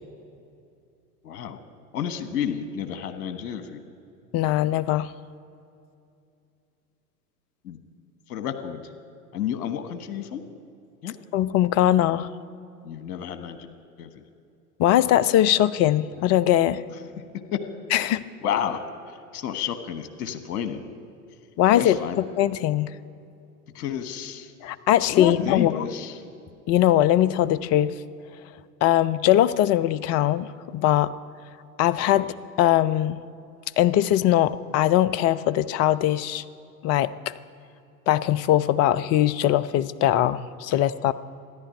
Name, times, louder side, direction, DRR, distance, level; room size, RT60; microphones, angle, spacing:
voice 1, 1.2-1.6 1.9-3.8 7.6-7.8 8.3-8.9 9.3-10.4 11.0-11.1 12.8-13.7 14.0-14.2 17.2-17.6 18.0-18.1 18.4-20.8 21.7-22.2 23.7-24.5 25.1-26.2 32.1-32.3 40.7-40.8, left 8 dB, 65° left, 9 dB, 1.4 m, -31 dB
voice 2, 4.3-5.1 11.3-12.3 14.8-16.8 17.9-18.2 21.6-22.0 22.4-22.9 24.6-25.7 26.7-27.9 28.8-31.1 31.8-32.3 32.6-33.2 33.8-36.4 36.8-37.3 38.1-41.1, left 12 dB, 35° left, 16 dB, 0.5 m, -21 dB
14.0 x 11.0 x 9.3 m, 2.6 s
hypercardioid pair, 90°, 47 cm